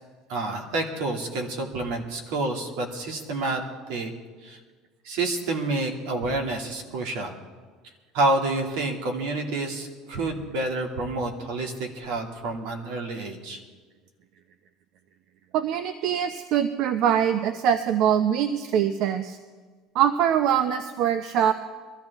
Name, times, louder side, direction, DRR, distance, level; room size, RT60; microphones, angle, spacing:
voice 1, 0.3-3.6 3.9-4.1 4.4-4.6 5.0-7.4 8.1-13.6, right 2 dB, 80° right, 2 dB, 2.3 m, -28 dB
voice 2, 15.5-19.4 19.9-21.5, right 9 dB, 60° right, 10 dB, 0.6 m, -23 dB
22.5 x 13.5 x 3.5 m, 1.5 s
cardioid pair, 135°, 0 cm